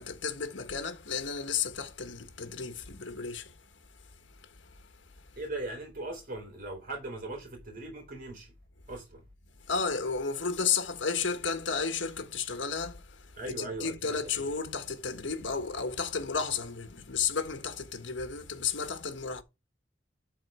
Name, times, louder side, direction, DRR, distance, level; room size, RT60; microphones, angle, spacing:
voice 1, 0.0-3.5 9.7-13.0 13.5-19.4, left 5 dB, 80° left, 1.4 m, -32 dB
voice 2, 5.4-8.5 8.9-9.2 13.4-14.5, right 2 dB, 50° right, 4.2 m, -39 dB
12.5 x 4.3 x 5.6 m
head